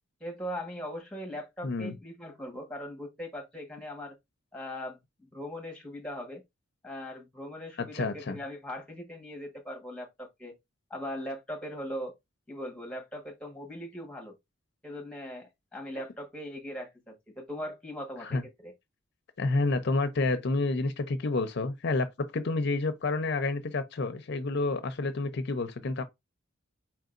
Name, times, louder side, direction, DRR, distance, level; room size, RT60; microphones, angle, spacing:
voice 1, 0.2-4.1 4.5-6.4 6.8-10.5 10.9-12.1 12.5-14.3 14.8-18.7, equal, 5° left, 1.3 m, -40 dB
voice 2, 1.6-1.9 7.8-8.4 18.2-18.4 19.4-26.0, left 3 dB, 60° left, 0.5 m, -29 dB
4.7 x 3.8 x 2.5 m
head